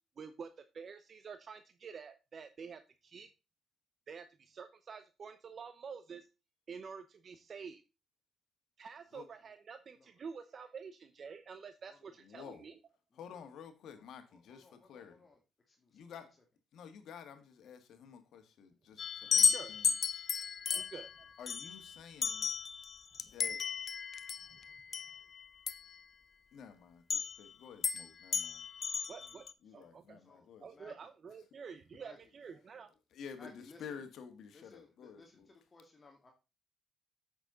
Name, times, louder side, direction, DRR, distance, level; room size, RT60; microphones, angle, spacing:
voice 1, 0.2-3.3 4.1-6.3 6.7-7.8 8.8-12.8 19.5-19.8 20.7-21.3 24.5-24.6 29.1-29.5 29.7-30.2 30.6-32.9, right 6 dB, 50° right, 0.7 m, -48 dB
voice 2, 12.2-12.6 13.2-15.2 15.9-16.3 16.7-19.9 20.7-20.8 21.4-22.5 23.2-23.6 26.5-28.6 29.6-30.7 33.1-35.5, left 7 dB, 75° left, 1.7 m, -51 dB
voice 3, 13.9-15.4 15.7-16.2 29.0-29.3 29.7-29.9 30.2-30.5 30.7-30.9 32.0-32.2 33.4-34.0 34.5-36.3, left 3 dB, 30° left, 1.9 m, -60 dB
sound 1, 19.0-25.9 27.1-27.5 27.8-28.1 28.3-29.5, left 6 dB, 45° left, 0.7 m, -34 dB
8.3 x 6.4 x 3.8 m
cardioid pair, 90°, 0 cm